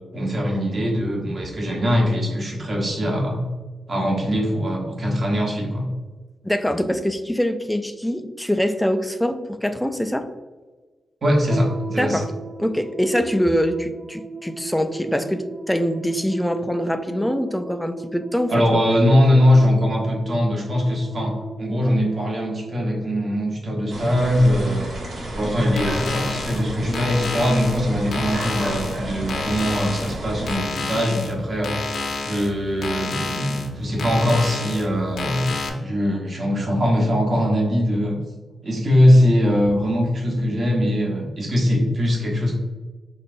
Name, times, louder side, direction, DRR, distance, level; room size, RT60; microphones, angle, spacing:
voice 1, 0.1-3.4 3.9-5.8 11.2-12.2 18.5-24.9 25.3-31.8 32.2-38.2 38.6-42.5, equal, 35° right, -1 dB, 1.1 m, -21 dB
voice 2, 6.4-10.3 12.0-12.3 12.6-18.8, equal, 5° left, 9 dB, 0.3 m, -24 dB
sound 1, 11.5-24.0, right 3 dB, 90° right, 1.0 m, -36 dB
sound 2, 23.9-30.6, right 1 dB, 60° right, 1.2 m, -32 dB
sound 3, 25.7-35.7, left 3 dB, 75° left, 0.8 m, -30 dB
5.4 x 3.8 x 2.5 m, 1.3 s
wide cardioid pair, 150°, 0 cm